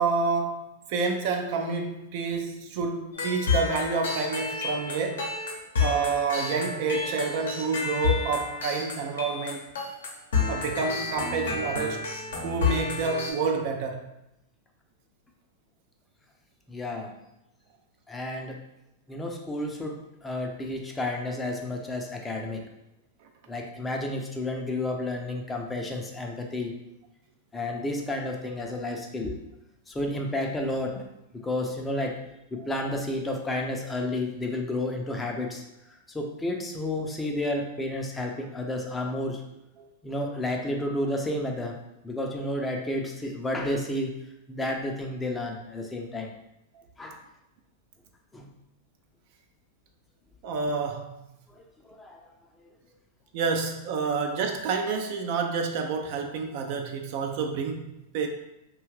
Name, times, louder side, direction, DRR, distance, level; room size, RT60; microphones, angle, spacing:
voice 1, 0.0-5.3 5.8-9.7 10.5-12.1 12.4-14.0 39.8-39.9 50.4-51.2 53.3-58.3, right 4 dB, 55° right, 4 dB, 0.4 m, -28 dB
sound 1, 3.1-13.3, left 5 dB, 75° left, 0.7 m, -30 dB
voice 2, 16.7-17.1 18.1-18.6 19.1-22.7 23.5-26.8 27.5-29.4 29.9-31.0 31.3-32.2 32.5-35.6 36.1-39.4 40.0-41.8 42.0-44.1 44.5-46.3 47.0-47.2 48.3-48.5 51.5-52.3, left 1 dB, 15° left, 2 dB, 0.5 m, -31 dB
2.7 x 2.3 x 3.1 m, 0.87 s
hypercardioid pair, 100°, 0 cm